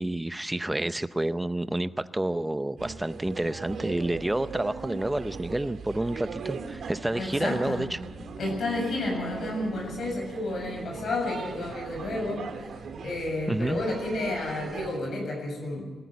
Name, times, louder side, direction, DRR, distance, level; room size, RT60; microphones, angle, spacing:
voice 1, 0.0-8.0 13.5-13.8, right 1 dB, 10° right, 13 dB, 0.7 m, -29 dB
sound 1, 2.8-15.0, right 5 dB, 70° right, 1.7 m, -39 dB
voice 2, 7.1-7.8 8.4-12.5 13.0-15.8, left 2 dB, 65° left, 1 dB, 7.7 m, -31 dB
sound 2, 8.1-12.9, right 1 dB, 85° left, 4.9 m, -47 dB
23.0 x 14.0 x 9.4 m, 1.2 s
wide cardioid pair, 140°, 0 cm